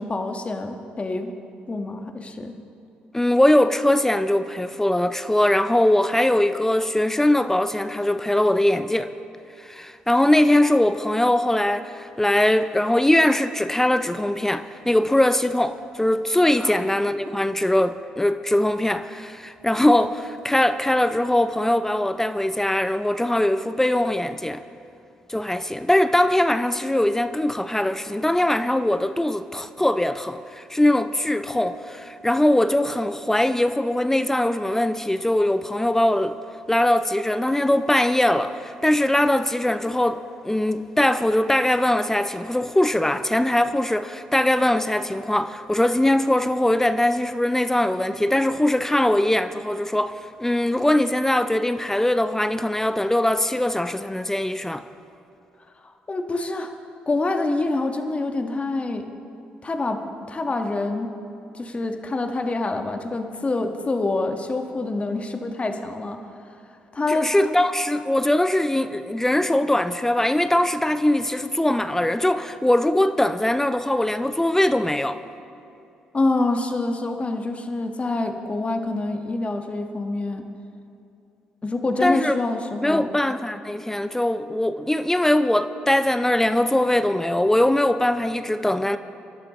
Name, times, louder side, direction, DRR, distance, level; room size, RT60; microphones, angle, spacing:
voice 1, 0.0-1.3 1.7-2.6 16.6-16.7 17.2-17.4 56.1-56.7 57.1-59.1 59.6-61.1 61.5-66.2 66.9-67.3 76.1-80.4 81.6-83.1, left 2 dB, 30° left, 1.4 m, -26 dB
voice 2, 3.1-9.1 9.6-24.6 25.3-36.4 36.7-50.1 50.4-54.8 67.1-75.2 82.0-82.3 82.8-89.0, left 1 dB, 10° left, 0.6 m, -21 dB
26.5 x 12.0 x 3.1 m
hypercardioid pair, 45°, 4 cm